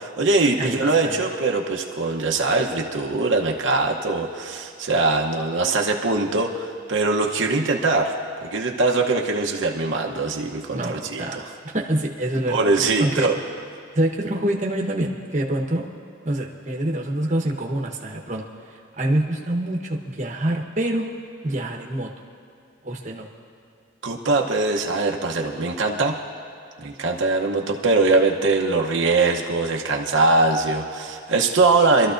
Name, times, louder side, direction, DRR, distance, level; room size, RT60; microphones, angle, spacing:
voice 1, 0.0-8.1 8.4-11.4 12.5-13.4 24.0-26.2 26.8-32.1, right 3 dB, 70° right, 0 dB, 0.9 m, -22 dB
voice 2, 0.6-1.2 10.7-11.4 11.6-13.3 13.9-15.9 16.2-18.4 19.0-21.1 21.4-22.1 22.8-23.3, right 1 dB, 35° right, 0 dB, 1.1 m, -26 dB
25.0 x 13.0 x 2.6 m, 2.5 s
head